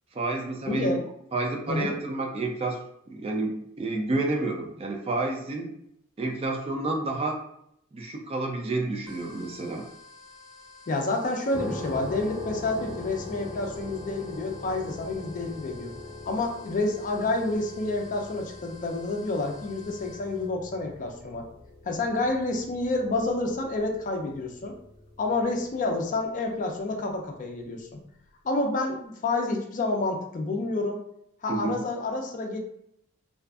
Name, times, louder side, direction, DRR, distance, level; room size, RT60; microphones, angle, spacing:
voice 1, 0.1-1.0 1.3-2.8 3.1-5.7 6.2-7.4 7.9-9.8 31.5-31.8, right 2 dB, 30° right, 1 dB, 0.4 m, -29 dB
voice 2, 0.7-1.0 1.7-1.9 10.9-15.9 16.3-21.4 21.8-24.7 25.2-28.0 28.4-31.0 31.4-32.6, left 2 dB, 40° left, 2 dB, 0.4 m, -29 dB
sound 1, 9.1-20.5, left 3 dB, 60° right, 0.8 m, -51 dB
sound 2, 11.5-26.2, left 2 dB, 15° left, 0.7 m, -42 dB
2.6 x 2.4 x 2.3 m, 0.73 s
head